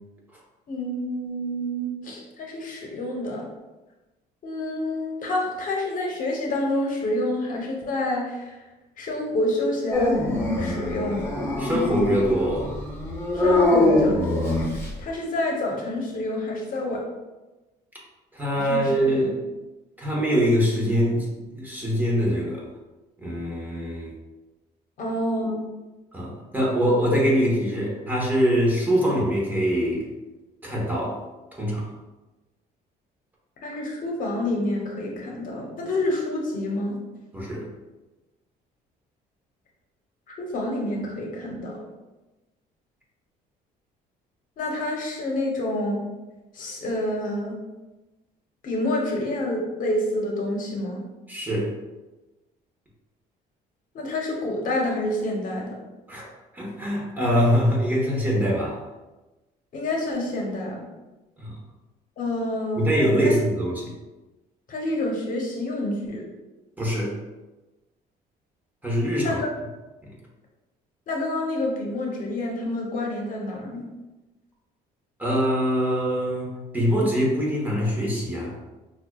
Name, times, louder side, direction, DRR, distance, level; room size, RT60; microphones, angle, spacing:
voice 1, 0.7-3.5 4.4-8.6 9.0-10.2 10.6-11.3 13.3-17.0 18.7-19.2 25.0-25.6 33.6-36.9 40.3-41.8 44.6-46.0 46.5-47.6 48.6-51.0 53.9-55.7 59.7-60.9 62.2-62.9 63.2-63.3 64.7-66.2 69.2-69.4 71.1-73.9, left 1 dB, 55° left, 0 dB, 0.9 m, -28 dB
Dog, 9.9-15.0, left 2 dB, 15° left, 0.8 m, -23 dB
voice 2, 11.6-12.7 18.3-19.3 20.0-22.6 23.2-24.1 26.1-30.0 30.6-31.2 31.6-31.8 37.3-37.7 51.3-51.7 56.1-56.3 56.5-58.8 61.4-61.6 62.8-63.9 66.8-67.2 68.8-69.4 70.0-70.1 75.2-78.5, equal, 10° right, -4 dB, 1.0 m, -23 dB
5.8 x 2.3 x 2.3 m, 1.1 s
cardioid pair, 110°, 17 cm